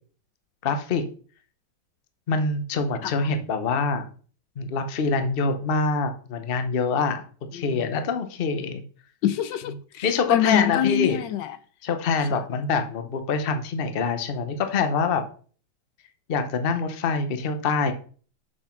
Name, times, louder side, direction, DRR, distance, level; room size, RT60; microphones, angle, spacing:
voice 1, 0.6-1.0 2.3-4.1 4.6-7.2 7.5-8.8 10.0-11.2 11.8-15.2 16.3-17.9, left 4 dB, 40° left, 0.8 m, -25 dB
voice 2, 7.5-7.9 9.2-11.6 12.3-12.4, left 10 dB, 75° left, 1.2 m, -26 dB
7.0 x 5.5 x 5.9 m
omnidirectional pair, 2.1 m